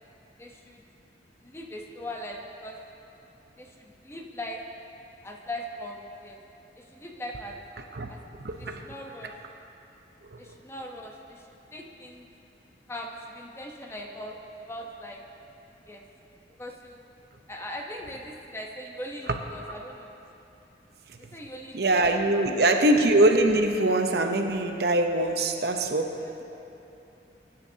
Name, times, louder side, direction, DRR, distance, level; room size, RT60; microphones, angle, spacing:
voice 1, 0.4-0.8 1.4-2.8 3.6-4.6 5.2-6.4 6.8-7.6 8.1-8.2 8.6-9.3 10.4-11.5 11.7-12.3 12.9-15.2 15.8-16.0 16.6-17.0 17.5-20.2 21.3-22.2 22.5-22.8 26.2-26.3, left 1 dB, 15° left, 1 dB, 0.9 m, -40 dB
voice 2, 8.4-8.9 10.3-10.4 19.3-19.4 21.7-26.4, right 1 dB, 60° right, 4 dB, 0.8 m, -23 dB
23.0 x 10.5 x 2.8 m, 2.9 s
head